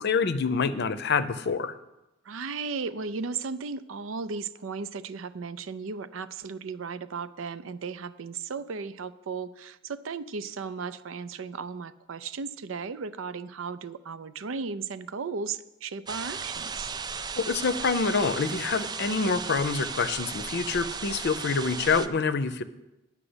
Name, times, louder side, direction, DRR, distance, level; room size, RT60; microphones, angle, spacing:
voice 1, 0.0-1.7 17.4-22.6, left 4 dB, 60° left, 12 dB, 0.6 m, -26 dB
voice 2, 2.3-16.9, right 5 dB, 80° right, 13 dB, 0.5 m, -35 dB
sound 1, 16.1-22.1, right 5 dB, 20° right, 0.4 m, -35 dB
9.9 x 6.0 x 7.9 m, 0.96 s
head